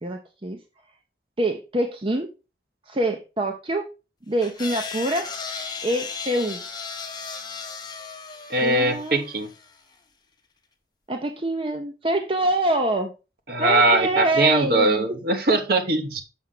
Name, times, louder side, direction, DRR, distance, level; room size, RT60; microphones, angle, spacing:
voice 1, 0.0-0.6 1.4-2.3 2.9-3.8 4.3-5.3 5.8-6.6 8.6-9.3 11.1-13.1 13.6-15.2, right 1 dB, 30° right, 4 dB, 0.7 m, -25 dB
sound 1, 4.4-9.8, left 5 dB, 25° left, 1.1 m, -35 dB
voice 2, 8.5-9.5 13.5-16.2, right 2 dB, 55° right, 6 dB, 1.2 m, -21 dB
6.3 x 6.0 x 3.8 m, 0.29 s
head